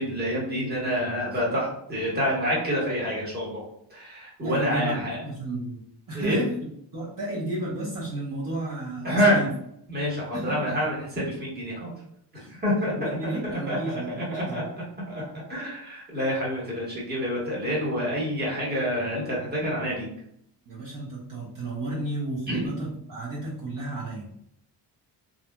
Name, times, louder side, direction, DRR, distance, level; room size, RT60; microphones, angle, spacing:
voice 1, 0.0-3.6 3.9-5.2 6.1-6.4 9.0-9.4 9.9-11.9 12.5-14.6 15.1-15.2 15.5-20.1 22.5-22.7, equal, 20° right, -5 dB, 1.2 m, -27 dB
voice 2, 4.4-5.8 6.1-9.5 10.3-10.8 12.4-12.5 12.9-14.6 20.7-24.5, right 2 dB, 45° right, -7 dB, 1.0 m, -33 dB
2.7 x 2.6 x 2.2 m, 0.71 s
cardioid pair, 100°, 44 cm